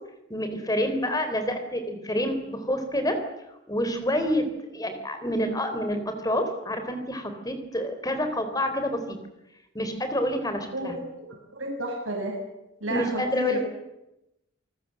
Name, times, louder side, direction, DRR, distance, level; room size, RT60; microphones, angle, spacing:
voice 1, 0.3-3.2 3.7-4.5 4.7-9.2 9.7-10.9 12.9-13.6, equal, 20° left, 7 dB, 3.9 m, -28 dB
voice 2, 10.7-11.3 11.5-12.3 12.8-13.6, right 1 dB, 90° right, 0 dB, 6.7 m, -31 dB
28.5 x 19.0 x 7.7 m, 0.91 s
head